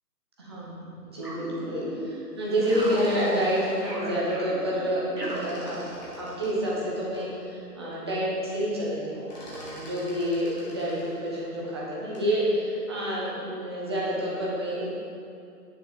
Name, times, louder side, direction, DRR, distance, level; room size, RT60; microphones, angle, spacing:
voice 1, 0.4-5.8 6.2-14.9, equal, 15° right, -6 dB, 1.1 m, -28 dB
sound 1, 1.2-2.2 2.7-6.3, equal, 75° right, 2.4 m, -36 dB
sound 2, 2.3-4.9 5.2-7.3 7.8-7.9 8.2-8.6 8.8-12.4, equal, 25° left, 2.3 m, -46 dB
9.5 x 7.2 x 5.4 m, 2.5 s
figure-of-eight pair, 150°, 48 cm